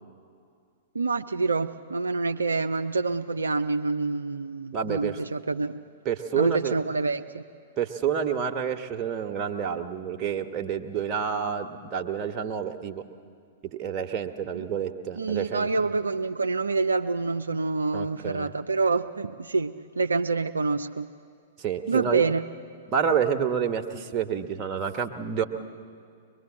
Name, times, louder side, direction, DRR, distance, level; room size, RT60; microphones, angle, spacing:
voice 1, 0.9-5.8 6.3-7.4 14.5-14.6 15.2-21.1 21.9-22.4, right 3 dB, 75° right, 6 dB, 0.5 m, -27 dB
voice 2, 4.7-5.2 6.0-6.8 7.8-13.0 13.7-15.9 17.9-18.5 21.6-22.2 22.9-25.4, right 7 dB, 30° right, 4 dB, 1.4 m, -29 dB
23.0 x 22.0 x 7.5 m, 2.3 s
figure-of-eight pair, 105°, 0 cm